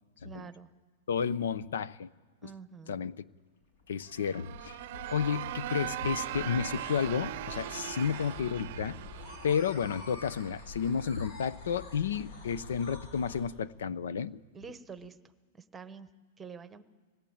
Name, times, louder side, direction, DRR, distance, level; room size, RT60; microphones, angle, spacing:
voice 1, 0.2-0.7 2.4-3.0 14.5-15.2 15.5-16.1 16.4-16.8, right 6 dB, 10° right, 11 dB, 1.0 m, -46 dB
voice 2, 1.1-2.1 2.9-3.2 3.9-4.8 5.1-9.0 9.4-14.4, left 7 dB, 90° left, 18 dB, 0.8 m, -31 dB
sound 1, 3.6-13.5, left 3 dB, 70° left, 7.1 m, -47 dB
sound 2, 4.1-10.9, right 14 dB, 55° right, 0.6 m, -40 dB
25.5 x 19.5 x 8.8 m, 1.5 s
supercardioid pair, 155°, 0 cm